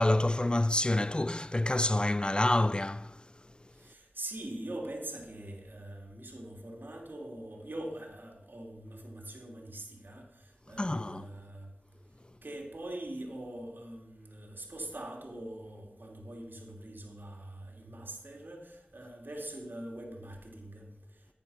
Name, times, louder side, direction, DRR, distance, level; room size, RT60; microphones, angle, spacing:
voice 1, 0.0-3.2 10.8-11.3, left 1 dB, 25° left, 0.3 m, -27 dB
voice 2, 3.7-11.7 12.4-21.3, right 1 dB, 70° right, 2.5 m, -43 dB
10.5 x 9.9 x 5.5 m
wide cardioid pair, 45°, 4 cm